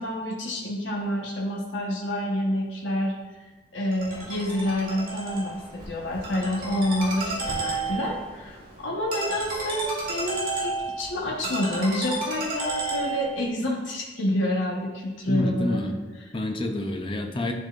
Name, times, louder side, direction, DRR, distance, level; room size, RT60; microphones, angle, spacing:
voice 1, 0.0-3.1 3.7-15.8 16.2-16.3, left 1 dB, 85° left, -3 dB, 1.1 m, -28 dB
Ringtone, 3.9-13.5, right 2 dB, 50° right, 1.9 m, -32 dB
voice 2, 15.3-16.0 16.3-17.5, left 1 dB, 25° left, 4 dB, 0.6 m, -28 dB
10.5 x 4.0 x 2.5 m, 1.2 s
head